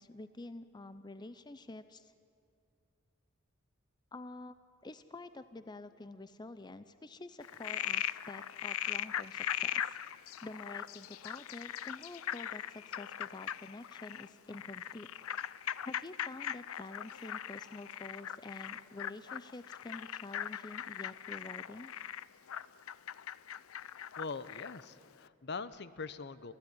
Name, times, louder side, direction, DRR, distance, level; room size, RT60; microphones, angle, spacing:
voice 1, 0.0-2.1 4.1-4.5 4.8-10.0 10.4-15.1 15.8-21.9, left 2 dB, 20° left, 12 dB, 0.5 m, -48 dB
Frog, 7.4-24.9, left 10 dB, 90° left, 0.5 m, -40 dB
voice 2, 24.2-26.5, left 4 dB, 55° left, 15 dB, 0.8 m, -42 dB
29.0 x 15.5 x 9.7 m, 2.4 s
head